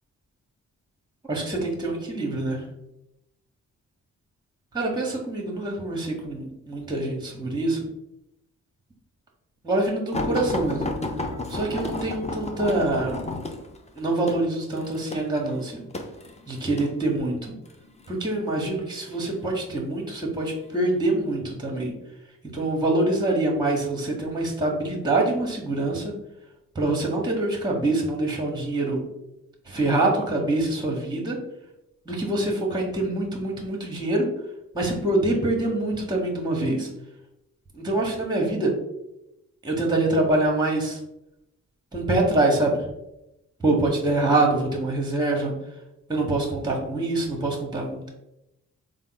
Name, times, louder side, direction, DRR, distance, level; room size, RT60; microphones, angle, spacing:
voice 1, 1.2-2.6 4.7-7.8 9.6-10.9 11.5-13.3 13.9-15.8 16.5-17.6 18.1-21.9 22.5-26.1 26.7-29.0 29.6-31.4 32.1-34.3 34.7-36.9 37.7-38.7 39.6-41.0 41.9-42.9 43.6-45.5 46.1-48.1, right 2 dB, 10° right, 0 dB, 1.0 m, -25 dB
sound 1, 10.1-16.9 17.7-18.1 19.1-19.7 20.5-20.6 21.0-21.1, left 2 dB, 20° left, 0.6 m, -32 dB
3.6 x 2.0 x 3.8 m, 0.88 s
supercardioid pair, 45°, 36 cm